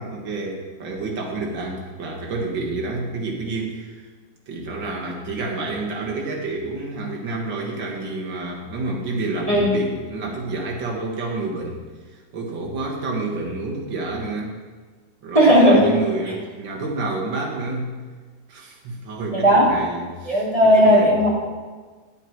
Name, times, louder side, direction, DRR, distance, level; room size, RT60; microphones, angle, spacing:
voice 1, 0.0-3.9 4.5-11.8 12.3-14.5 15.2-17.9 18.5-20.4 20.8-21.2, right 3 dB, 90° right, -1 dB, 2.3 m, -29 dB
voice 2, 15.3-15.9 16.3-16.4 19.4-19.6 20.3-21.3, equal, 20° right, -5 dB, 2.4 m, -15 dB
10.0 x 8.1 x 4.6 m, 1.4 s
omnidirectional pair, 2.0 m